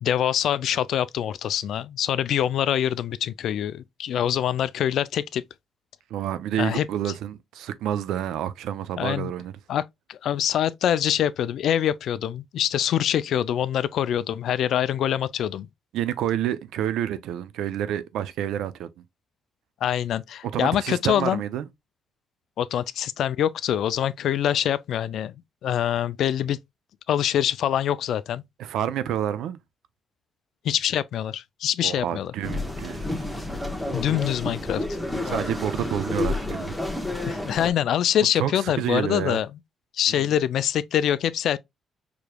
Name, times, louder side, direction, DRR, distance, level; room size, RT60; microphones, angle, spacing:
voice 1, 0.0-5.4 6.6-6.9 9.0-9.3 9.7-9.8 10.1-15.7 19.8-21.4 22.6-25.4 25.6-26.6 27.1-28.4 30.6-32.3 33.9-35.0 37.3-39.5 39.9-41.6, left 10 dB, 70° left, 0.3 m, -24 dB
voice 2, 6.1-9.5 15.9-18.9 20.5-21.6 28.6-29.6 31.8-33.2 35.3-36.7 38.4-39.4 40.1-40.3, right 10 dB, 85° right, 0.5 m, -29 dB
sound 1, 32.4-37.7, left 1 dB, 5° left, 0.9 m, -30 dB
4.9 x 3.0 x 2.2 m
cardioid pair, 90°, 0 cm